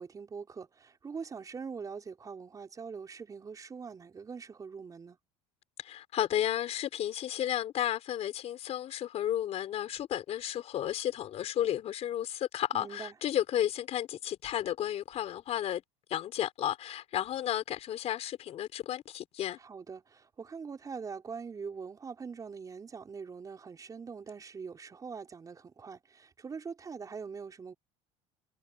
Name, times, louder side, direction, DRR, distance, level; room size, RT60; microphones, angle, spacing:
voice 1, 0.0-5.2 12.7-13.1 19.6-27.7, right 5 dB, 25° right, 5.7 m, -43 dB
voice 2, 5.8-15.8 16.1-19.6, left 11 dB, 45° left, 4.4 m, -33 dB
supercardioid pair, 120°, 15 cm